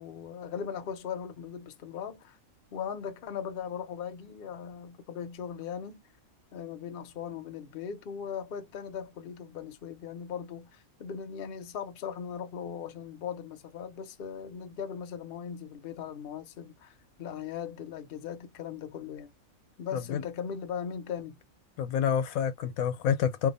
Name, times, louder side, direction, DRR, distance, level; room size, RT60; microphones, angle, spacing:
voice 1, 0.0-2.4 2.7-6.0 6.5-19.3 19.8-21.4, left 7 dB, 55° left, 0.7 m, -39 dB
voice 2, 19.9-20.2 21.8-23.5, left 8 dB, 80° left, 1.1 m, -28 dB
2.8 x 2.4 x 4.0 m
omnidirectional pair, 1.5 m